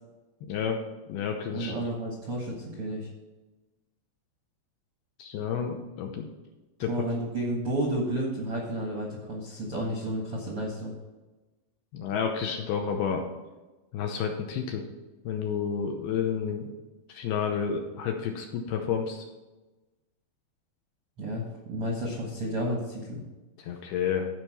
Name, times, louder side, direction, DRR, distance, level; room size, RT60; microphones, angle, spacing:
voice 1, 0.5-0.8 1.1-1.7 5.2-6.3 6.8-6.9 11.9-13.3 13.9-14.8 15.3-16.7 17.1-19.3 23.6-24.3, left 7 dB, 80° left, 3 dB, 2.5 m, -30 dB
voice 2, 1.5-3.1 6.9-10.9 21.2-23.2, right 1 dB, 65° right, -2 dB, 1.4 m, -31 dB
14.0 x 5.2 x 4.3 m, 1.1 s
omnidirectional pair, 5.2 m